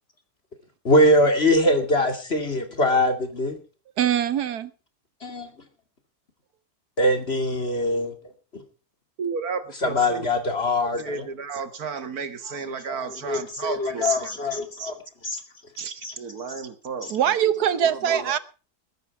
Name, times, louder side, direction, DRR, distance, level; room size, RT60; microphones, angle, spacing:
voice 1, 0.8-3.6 5.2-5.5 7.0-8.1 8.5-8.6 9.8-11.2 12.9-13.0 13.3-14.9 15.2-15.4 16.0-16.1 17.0-17.1 18.1-18.2, left 1 dB, 40° left, 2.8 m, -22 dB
voice 2, 4.0-4.7 17.1-18.4, right 10 dB, 90° right, 1.5 m, -22 dB
voice 3, 9.2-10.3 11.0-14.3 14.8-14.9 15.8-17.3 17.8-18.4, right 5 dB, 70° right, 2.0 m, -33 dB
21.0 x 10.0 x 4.7 m
omnidirectional pair, 1.6 m